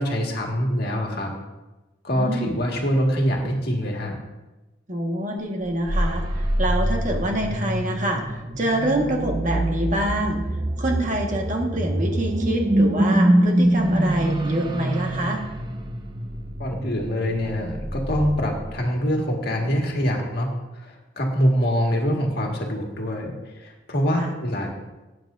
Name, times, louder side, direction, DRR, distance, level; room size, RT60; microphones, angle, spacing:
voice 1, 0.0-1.3 2.0-4.2 16.6-24.7, equal, 55° left, 1 dB, 1.8 m, -24 dB
voice 2, 2.1-2.6 4.9-10.4 10.8-15.4 24.2-24.3, right 1 dB, 40° right, 0 dB, 1.6 m, -26 dB
sound 1, 5.6-19.1, right 1 dB, 20° right, 0.7 m, -25 dB
17.5 x 9.2 x 2.6 m, 1.1 s
head